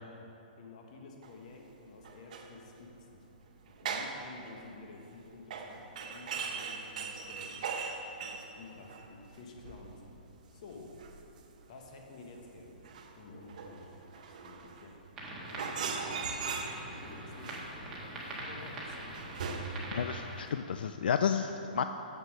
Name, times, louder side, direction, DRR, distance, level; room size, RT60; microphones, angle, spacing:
voice 1, 0.6-3.3 3.8-7.9 8.2-10.1 10.5-11.0 11.7-12.9 13.2-15.0 15.5-16.0 16.8-17.7 18.5-19.0 19.4-19.5, left 3 dB, 45° left, 2 dB, 1.2 m, -51 dB
sound 1, 1.2-1.3 2.0-2.5 2.8-3.0 3.7-4.2 4.5-4.8 5.5-9.3 9.6-10.4 10.7-11.7 12.0-12.1 12.4-12.5 12.8-15.1 15.4-17.0 17.4-20.0 20.5-20.6, right 5 dB, 50° right, 0.8 m, -40 dB
sound 2, 15.2-20.3, right 1 dB, 10° right, 1.3 m, -43 dB
voice 2, 19.9-21.8, left 7 dB, 80° left, 8 dB, 0.3 m, -31 dB
7.1 x 6.7 x 6.4 m, 3.0 s
hypercardioid pair, 165°, 5 cm